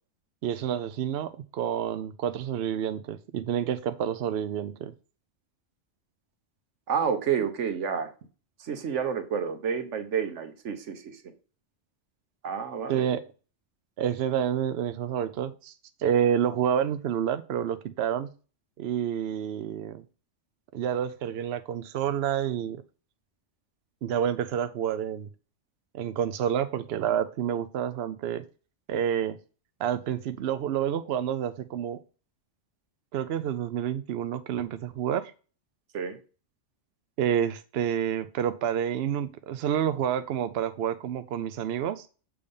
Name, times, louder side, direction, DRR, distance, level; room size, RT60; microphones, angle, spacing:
voice 1, 0.4-4.9 12.9-13.2 14.0-15.7 16.0-18.3 18.8-20.0 20.7-22.8 24.0-25.3 25.9-28.4 28.9-29.4 29.8-32.0 33.1-35.3 37.2-42.1, right 9 dB, 65° right, 11 dB, 0.8 m, -28 dB
voice 2, 6.9-8.1 8.6-11.2 12.4-13.1 35.9-36.2, right 7 dB, 80° right, 9 dB, 1.2 m, -29 dB
7.0 x 3.4 x 5.3 m, 0.35 s
omnidirectional pair, 1.2 m